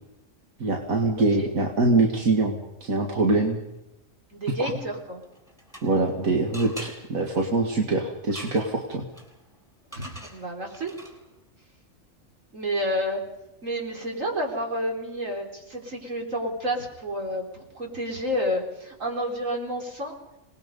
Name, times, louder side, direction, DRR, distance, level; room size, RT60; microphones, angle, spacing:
voice 1, 0.6-3.6 4.6-4.7 5.8-9.1, right 2 dB, 90° right, 1 dB, 2.4 m, -24 dB
voice 2, 4.3-5.2 9.9-10.9 12.5-13.2 13.6-20.1, equal, 70° right, 0 dB, 4.5 m, -30 dB
sound 1, 5.2-6.2 6.5-11.4, right 1 dB, 5° left, 4.0 m, -45 dB
27.0 x 20.0 x 5.4 m, 0.92 s
omnidirectional pair, 1.4 m